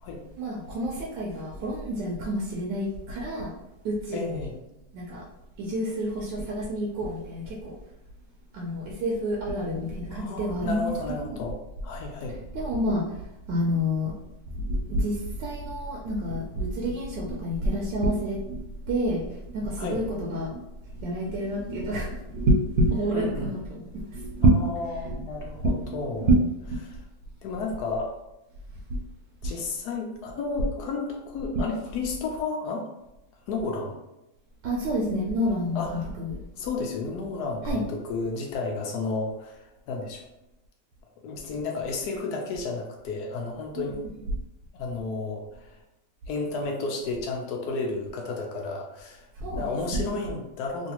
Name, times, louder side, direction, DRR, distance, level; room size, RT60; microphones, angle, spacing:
voice 1, 0.4-3.5 3.8-4.5 4.9-5.3 5.6-7.7 8.5-10.9 11.2-11.4 12.5-13.0 13.5-14.1 14.6-20.6 21.0-24.8 25.0-25.2 25.6-26.4 26.7-26.8 28.9-29.0 29.4-29.5 31.6-31.7 34.6-36.4 37.6-37.8 43.8-43.9 49.4-49.6 49.9-50.3, right 1 dB, 80° right, -2 dB, 1.2 m, -28 dB
voice 2, 4.1-4.6 10.1-11.6 11.8-12.4 19.8-20.0 23.1-23.5 24.4-26.3 26.8-27.0 27.4-28.1 29.4-32.8 33.5-34.0 35.7-36.1 36.6-39.6 39.9-40.3 41.2-44.0 44.7-45.8 46.3-49.2 49.5-50.9, left 3 dB, 70° left, 1 dB, 1.0 m, -32 dB
3.1 x 2.7 x 2.8 m, 0.91 s
omnidirectional pair, 1.9 m